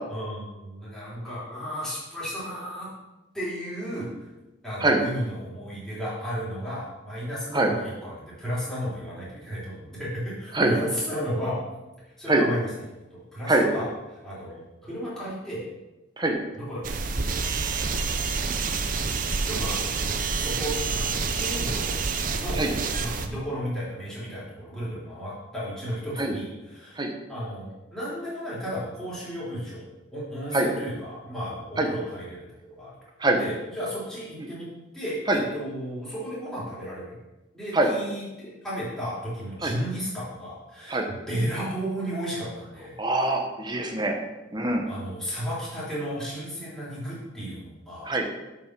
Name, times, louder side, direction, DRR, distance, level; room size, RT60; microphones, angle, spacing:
voice 1, 0.1-2.9 3.3-4.1 4.6-11.6 12.0-12.7 13.1-15.6 16.6-16.8 17.3-18.2 19.4-19.9 20.4-21.9 22.3-22.6 22.9-27.0 27.3-32.9 33.3-34.7 34.9-37.2 37.5-41.0 41.3-43.0 44.9-48.3, equal, 5° left, -10 dB, 3.5 m, -34 dB
sound 1, 16.8-23.3, right 4 dB, 45° right, 0.6 m, -28 dB
voice 2, 43.0-44.2 44.5-44.9 48.0-48.3, right 2 dB, 20° right, 2 dB, 1.1 m, -23 dB
7.7 x 5.8 x 6.2 m, 1.1 s
head